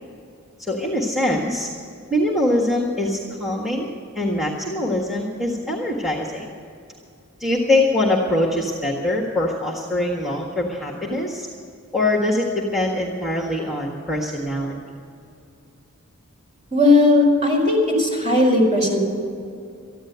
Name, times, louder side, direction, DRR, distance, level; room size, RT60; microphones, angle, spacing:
voice 1, 0.6-1.7 2.1-6.5 7.4-11.5 11.9-14.8, left 1 dB, ahead, -1 dB, 1.5 m, -23 dB
voice 2, 16.7-19.0, left 2 dB, 35° right, -1 dB, 4.8 m, -17 dB
14.5 x 10.0 x 8.0 m, 2.4 s
head